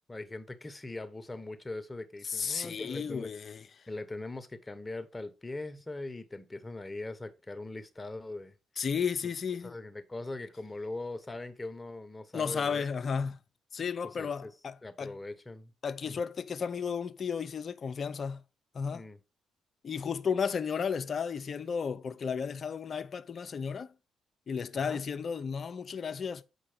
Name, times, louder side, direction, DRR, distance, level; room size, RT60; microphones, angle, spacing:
voice 1, 0.1-3.3 3.9-8.5 9.6-12.8 14.0-14.5 14.8-15.7 16.1-16.2 18.9-19.2 24.9-25.0, left 2 dB, 20° left, 1.1 m, -41 dB
voice 2, 2.2-3.6 8.8-9.7 12.3-13.4 13.7-15.1 15.8-18.4 18.7-19.0 19.8-23.9 24.5-26.4, left 6 dB, 50° left, 0.6 m, -33 dB
7.8 x 5.1 x 4.9 m
hypercardioid pair, 45°, 0 cm